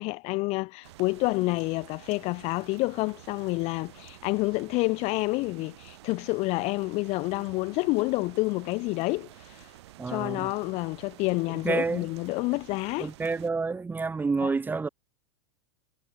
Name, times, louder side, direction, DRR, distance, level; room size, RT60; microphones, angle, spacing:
voice 1, 0.0-9.7 10.1-13.1 14.4-14.5, left 24 dB, 45° left, 0.9 m, -29 dB
sound 1, 0.8-13.5, right 16 dB, 70° right, 5.6 m, -50 dB
voice 2, 10.0-10.5 11.6-12.1 13.0-14.9, right 4 dB, 15° right, 2.3 m, -29 dB
supercardioid pair, 120°, 14 cm